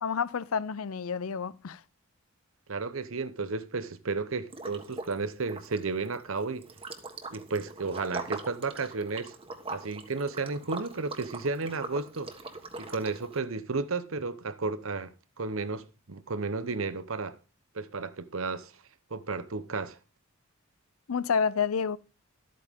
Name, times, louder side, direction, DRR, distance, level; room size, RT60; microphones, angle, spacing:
voice 1, 0.0-1.8 21.1-22.0, left 6 dB, 80° left, 0.5 m, -29 dB
voice 2, 2.7-6.7 7.3-9.4 9.7-12.3 12.8-17.4 17.7-18.7 19.1-20.0, right 4 dB, 70° right, 0.9 m, -33 dB
Liquid, 4.5-5.2 5.4-13.4, right 3 dB, 25° right, 1.4 m, -41 dB
13.0 x 8.6 x 3.7 m
head